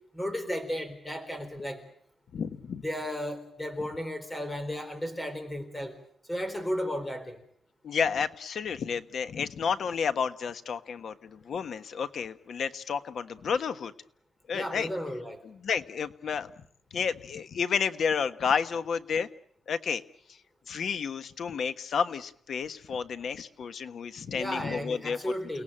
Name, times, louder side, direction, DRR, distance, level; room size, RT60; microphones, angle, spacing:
voice 1, 0.1-1.8 2.8-6.0 6.3-7.4 14.5-15.4 24.3-25.6, equal, 10° left, 9 dB, 4.2 m, -34 dB
voice 2, 2.3-2.8 7.8-13.9 14.5-14.9 15.4-16.5 16.9-19.3 19.7-20.0 20.7-25.2, left 6 dB, 60° left, 11 dB, 1.3 m, -31 dB
30.0 x 18.0 x 8.8 m, 0.66 s
wide cardioid pair, 140°, 0 cm